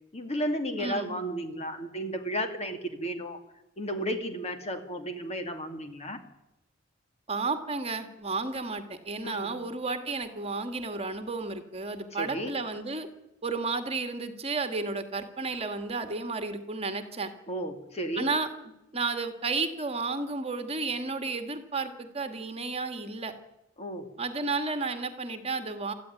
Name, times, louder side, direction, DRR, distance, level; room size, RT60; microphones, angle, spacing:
voice 1, 0.1-3.4 3.8-6.2 9.2-9.6 12.1-12.5 17.5-18.3 23.8-24.1, equal, 35° left, 6 dB, 2.6 m, -33 dB
voice 2, 0.8-1.1 7.3-13.1 13.4-17.3 18.2-18.5 18.9-23.3 24.2-25.9, right 3 dB, 30° right, 7 dB, 2.1 m, -32 dB
26.5 x 14.0 x 9.9 m, 0.91 s
head